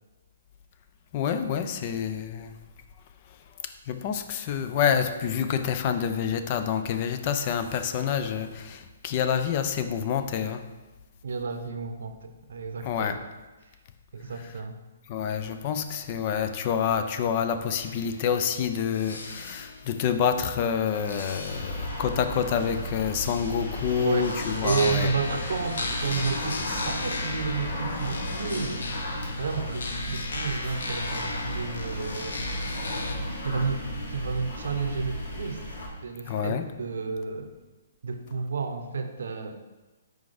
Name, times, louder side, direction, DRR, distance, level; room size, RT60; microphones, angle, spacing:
voice 1, 1.1-2.6 3.9-10.6 12.8-13.2 15.1-25.1 36.3-36.6, left 8 dB, 30° left, 9 dB, 0.3 m, -27 dB
voice 2, 11.2-13.2 14.1-14.8 24.0-24.3 24.6-28.9 29.4-32.4 33.4-35.6 36.0-37.5 38.0-39.6, right 5 dB, 75° right, 7 dB, 0.6 m, -31 dB
sound 1, 17.8-33.1, left 2 dB, 80° left, 0.8 m, -36 dB
sound 2, 21.4-35.9, equal, 55° left, 1.4 m, -34 dB
4.7 x 4.1 x 4.9 m, 1.2 s
hypercardioid pair, 165°, 0 cm